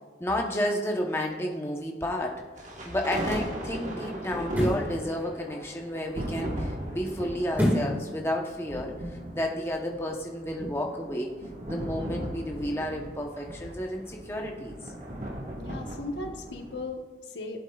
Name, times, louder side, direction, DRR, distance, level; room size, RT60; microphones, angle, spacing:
voice 1, 0.2-2.4 2.8-11.3 11.7-14.8, equal, 15° left, 0 dB, 0.9 m, -31 dB
sound 1, 2.6-2.7 4.4-4.9 7.5-8.0 8.5-8.6, equal, 10° right, 2.0 m, -25 dB
sound 2, 2.6-16.8, right 1 dB, 45° right, 1.4 m, -37 dB
voice 2, 15.6-17.6, left 2 dB, 90° left, 4 dB, 1.0 m, -37 dB
16.0 x 8.0 x 2.4 m, 1.4 s
head